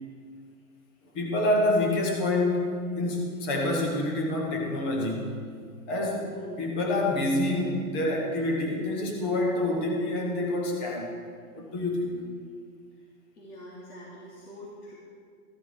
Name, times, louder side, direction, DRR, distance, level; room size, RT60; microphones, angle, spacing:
voice 1, 1.1-5.4 5.9-6.3 6.6-11.2 11.5-12.3, left 1 dB, 10° left, 0 dB, 0.4 m, -27 dB
voice 2, 6.2-6.7 13.4-14.9, equal, 80° left, -6 dB, 3.6 m, -45 dB
14.5 x 12.0 x 4.8 m, 2.2 s
hypercardioid pair, 155°, 44 cm